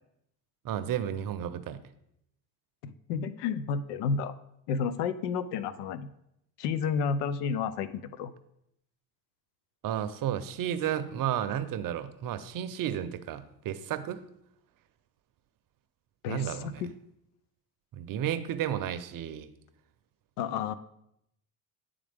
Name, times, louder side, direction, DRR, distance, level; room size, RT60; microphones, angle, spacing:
voice 1, 0.6-1.8 9.8-14.2 16.2-16.8 17.9-19.5, right 10 dB, 50° right, 11 dB, 0.6 m, -32 dB
voice 2, 2.8-4.4 4.7-6.1 6.6-8.3 16.2-16.9 20.4-20.7, left 6 dB, 90° left, 14 dB, 0.5 m, -31 dB
9.5 x 3.6 x 3.4 m, 0.79 s
supercardioid pair, 75°, 44 cm